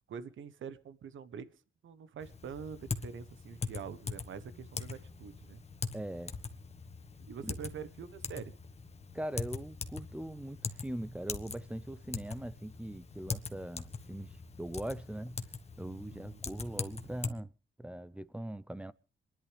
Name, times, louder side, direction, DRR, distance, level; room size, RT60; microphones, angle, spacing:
voice 1, 0.1-1.5 1.8-5.6 7.3-8.5 16.1-16.4, right 7 dB, 80° right, 1.1 m, -45 dB
Typing, 2.2-17.3, left 4 dB, 30° left, 1.3 m, -42 dB
voice 2, 5.9-6.3 7.4-7.6 9.1-15.4 15.8-17.5 17.8-18.9, right 1 dB, 5° right, 0.6 m, -41 dB
27.0 x 11.0 x 3.4 m
wide cardioid pair, 120°, 20 cm